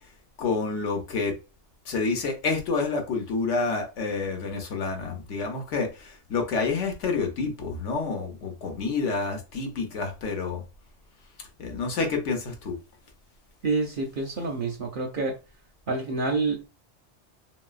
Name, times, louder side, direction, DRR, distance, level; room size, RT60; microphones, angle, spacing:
voice 1, 0.4-1.4 1.9-10.6 11.6-12.8, left 4 dB, 70° left, 1.1 m, -28 dB
voice 2, 13.6-15.3 15.9-16.7, right 3 dB, 60° right, 0.6 m, -27 dB
3.0 x 2.7 x 2.3 m
omnidirectional pair, 1.3 m